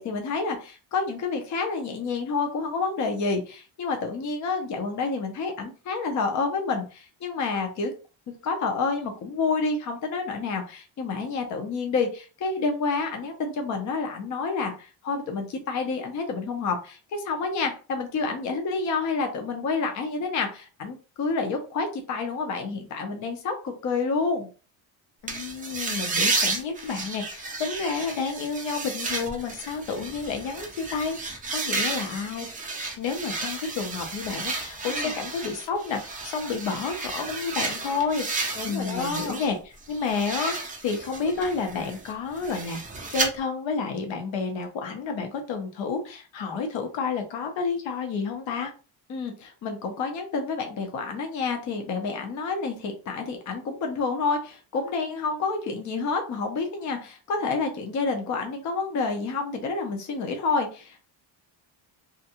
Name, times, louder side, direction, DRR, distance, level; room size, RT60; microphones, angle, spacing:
voice 1, 0.0-7.9 8.4-24.5 34.9-35.1 38.6-39.4 49.1-61.0, left 4 dB, 40° left, 0.6 m, -29 dB
voice 2, 25.2-32.5 33.0-39.6 39.9-42.8 43.1-48.7, left 5 dB, 70° left, 0.8 m, -30 dB
sound 1, 25.3-39.5 39.8-43.3, right 3 dB, 20° right, 0.3 m, -32 dB
2.5 x 2.2 x 2.8 m
cardioid pair, 165°, 47 cm